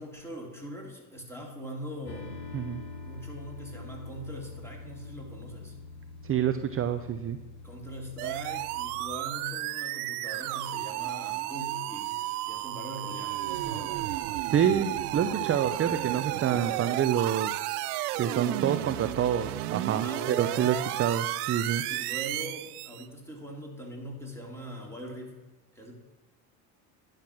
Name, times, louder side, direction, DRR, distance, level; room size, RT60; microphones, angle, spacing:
voice 1, 0.0-2.3 3.0-5.8 7.6-12.1 12.5-14.0 18.1-18.9 20.0-20.9 21.9-25.4 25.7-25.9, equal, 5° left, -1 dB, 3.3 m, -42 dB
sound 1, 2.1-9.1, left 3 dB, 55° left, 1.9 m, -44 dB
voice 2, 6.2-7.4 14.5-17.6 18.2-21.8, right 9 dB, 30° right, 9 dB, 0.6 m, -27 dB
sound 2, 8.2-23.1, right 16 dB, 90° right, 0.6 m, -33 dB
10.5 x 6.7 x 6.0 m, 1.2 s
supercardioid pair, 85°, 44 cm